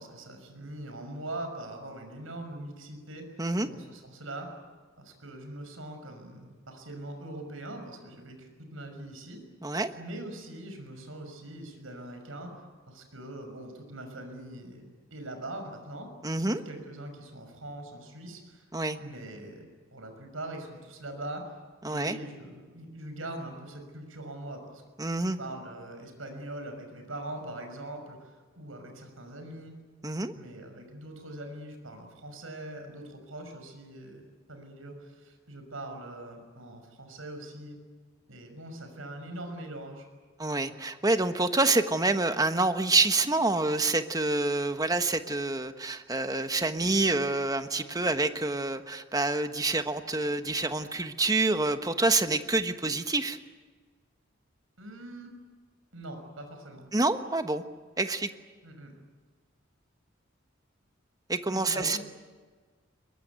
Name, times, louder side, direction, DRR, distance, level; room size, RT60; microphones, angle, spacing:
voice 1, 0.0-4.5 5.0-9.4 10.0-12.5 12.9-16.1 16.5-18.7 19.0-21.6 21.9-24.8 25.4-29.7 30.3-37.8 38.3-40.1 40.8-40.9 54.8-55.3 55.9-56.8 58.6-58.9 61.5-62.0, right 1 dB, 80° right, 6 dB, 6.1 m, -42 dB
voice 2, 3.4-3.7 9.6-9.9 16.2-16.6 18.7-19.0 21.8-22.2 25.0-25.4 30.0-30.3 40.4-53.4 56.9-57.6 58.0-58.3 61.3-62.0, right 2 dB, 20° right, 8 dB, 1.2 m, -27 dB
22.5 x 22.5 x 9.4 m, 1.4 s
head